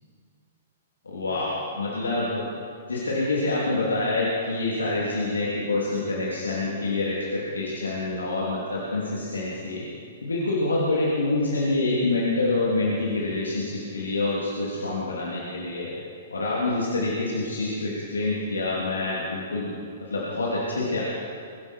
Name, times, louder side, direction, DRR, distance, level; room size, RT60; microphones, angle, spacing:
voice 1, 1.0-2.5 2.9-9.9 10.2-15.9 16.3-19.7 20.1-21.0, left 2 dB, 80° left, -6 dB, 3.0 m, -26 dB
23.5 x 11.5 x 4.5 m, 2.4 s
figure-of-eight pair, 115°, 0 cm